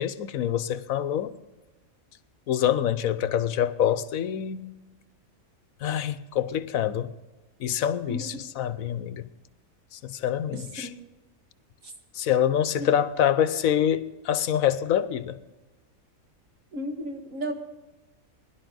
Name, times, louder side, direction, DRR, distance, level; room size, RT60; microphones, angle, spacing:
voice 1, 0.0-1.3 2.5-4.7 5.8-7.1 7.6-9.3 9.9-10.9 12.1-15.4, left 10 dB, 75° left, 1.1 m, -26 dB
voice 2, 10.5-11.0 11.8-11.9 12.8-12.9 16.7-17.5, equal, 65° right, 2.2 m, -34 dB
21.0 x 11.5 x 4.0 m
omnidirectional pair, 1.5 m